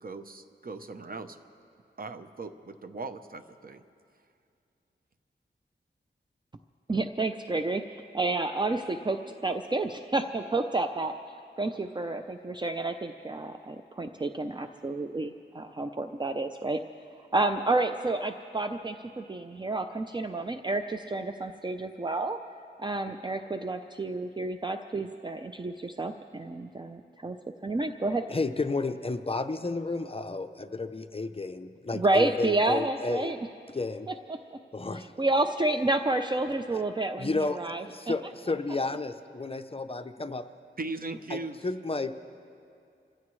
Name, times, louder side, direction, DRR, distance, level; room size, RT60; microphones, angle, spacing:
voice 1, 0.0-1.4 2.0-3.8 40.8-41.6, right 3 dB, 50° right, 8 dB, 0.8 m, -39 dB
voice 2, 6.9-11.1 11.6-16.8 17.3-22.4 22.8-27.4 27.6-28.2 31.9-33.4 34.1-34.6 35.0-38.1, right 2 dB, 25° right, 7 dB, 0.5 m, -30 dB
voice 3, 28.3-33.4 33.7-34.1 34.7-35.1 37.2-37.6 37.9-40.5 41.3-42.1, left 3 dB, 30° left, 9 dB, 0.6 m, -32 dB
28.0 x 15.5 x 3.2 m, 2.4 s
wide cardioid pair, 100°, 20 cm